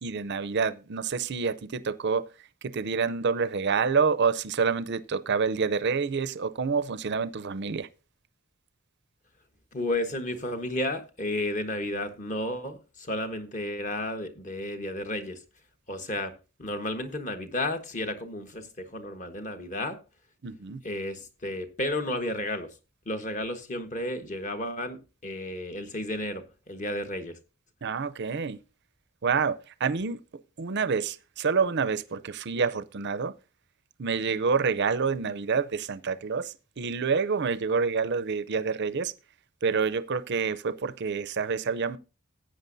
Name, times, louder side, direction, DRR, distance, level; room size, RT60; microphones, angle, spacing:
voice 1, 0.0-2.3 2.6-7.9 20.4-20.8 27.8-28.6 29.2-30.2 30.6-33.3 34.0-39.1 39.6-42.0, right 5 dB, 50° right, 0.6 m, -27 dB
voice 2, 9.7-15.4 15.9-16.3 16.6-20.0 20.8-22.7 23.1-27.4, left 1 dB, 35° left, 1.2 m, -32 dB
14.5 x 8.7 x 2.7 m
head